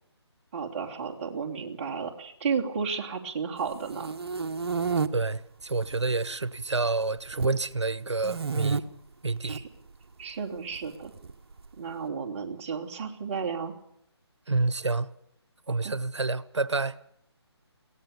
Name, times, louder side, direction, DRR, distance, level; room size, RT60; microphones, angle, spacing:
voice 1, 0.5-4.1 9.4-9.6 10.2-11.1 11.8-13.7 15.8-15.9, right 5 dB, 30° right, 3.1 m, -33 dB
sound 1, 3.7-5.1 5.7-6.3 6.6-7.6 8.2-8.8 9.4-9.6 10.7-11.7, right 5 dB, 60° right, 1.4 m, -30 dB
voice 2, 5.1-8.8 9.2-9.6 14.5-15.1 15.7-17.0, right 3 dB, 80° right, 1.2 m, -28 dB
22.0 x 18.0 x 6.9 m
figure-of-eight pair, 155°, 14 cm